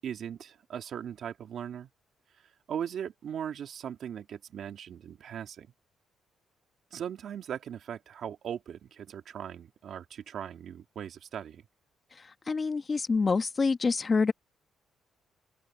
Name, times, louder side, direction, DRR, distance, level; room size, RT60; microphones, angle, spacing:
voice 1, 0.0-1.9 2.4-5.7 6.9-11.7, right 9 dB, 65° right, 3.0 m, -39 dB
voice 2, 12.5-14.3, left 4 dB, 35° left, 1.5 m, -26 dB
cardioid pair, 85°, 0 cm